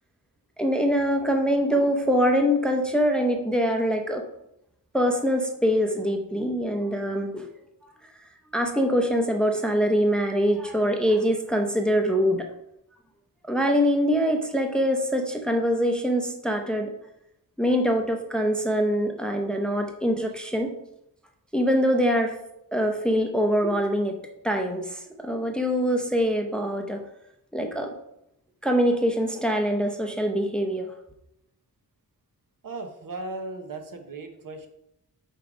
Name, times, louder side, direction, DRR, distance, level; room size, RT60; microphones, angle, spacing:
voice 1, 0.6-4.2 4.9-7.5 8.5-12.5 13.5-16.9 17.6-20.8 21.5-22.4 22.7-24.2 24.4-27.0 27.5-27.9 28.6-30.9, equal, ahead, 3 dB, 0.6 m, -24 dB
voice 2, 32.6-34.7, right 2 dB, 60° right, 5 dB, 0.9 m, -36 dB
5.3 x 3.7 x 4.8 m, 0.81 s
wide cardioid pair, 100°, 37 cm